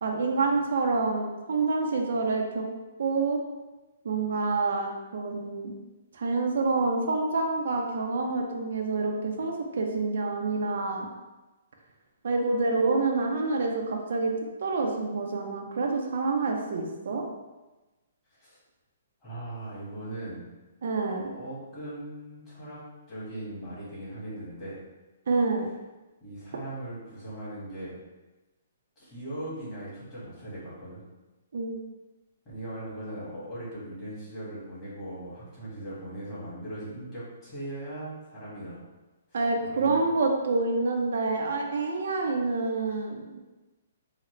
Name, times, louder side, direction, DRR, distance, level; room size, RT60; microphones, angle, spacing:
voice 1, 0.0-2.7 3.0-3.4 4.0-5.7 6.1-11.1 12.2-14.3 14.6-17.2 20.8-21.2 25.3-25.7 31.5-31.8 39.3-43.4, right 3 dB, 65° right, 1 dB, 0.5 m, -27 dB
voice 2, 19.2-20.4 21.1-22.8 23.1-24.8 26.2-28.0 29.0-31.0 32.4-38.8 39.3-40.1, right 1 dB, 20° left, -10 dB, 1.5 m, -39 dB
3.8 x 2.1 x 3.1 m, 1.1 s
hypercardioid pair, 165°, 0 cm